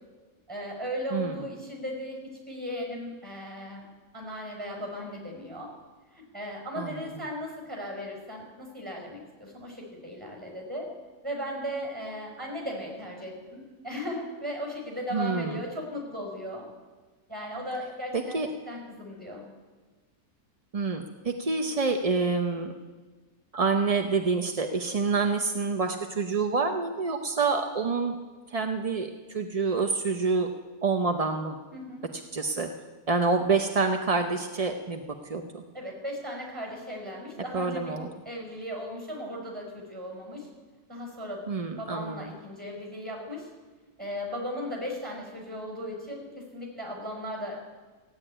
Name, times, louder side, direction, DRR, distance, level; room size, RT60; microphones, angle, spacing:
voice 1, 0.5-2.2 2.5-3.8 4.1-5.7 6.1-10.9 11.2-16.6 17.3-18.4 18.7-19.4 31.7-32.0 35.7-38.0 38.2-40.5 40.9-41.5 41.8-43.5 44.0-47.6, equal, 15° right, 0 dB, 5.2 m, -37 dB
voice 2, 6.8-7.1 15.1-15.6 18.1-18.5 20.7-22.7 23.5-28.2 28.5-30.5 30.8-31.6 32.3-32.7 33.1-35.0 35.3-35.6 37.5-38.1 41.5-42.3, right 4 dB, 40° right, 5 dB, 0.5 m, -27 dB
16.0 x 8.2 x 9.9 m, 1.3 s
omnidirectional pair, 1.6 m